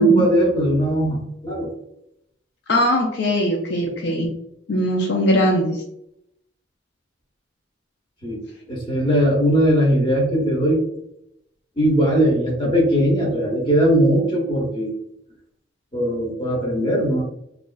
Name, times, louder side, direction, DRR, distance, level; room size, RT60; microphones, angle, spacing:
voice 1, 0.0-1.7 8.2-8.4 8.7-10.8 11.8-14.9 15.9-17.2, right 1 dB, 25° left, -3 dB, 0.9 m, -19 dB
voice 2, 2.7-4.3 4.7-5.8, equal, 55° left, -1 dB, 0.4 m, -20 dB
3.2 x 2.4 x 2.2 m, 0.78 s
head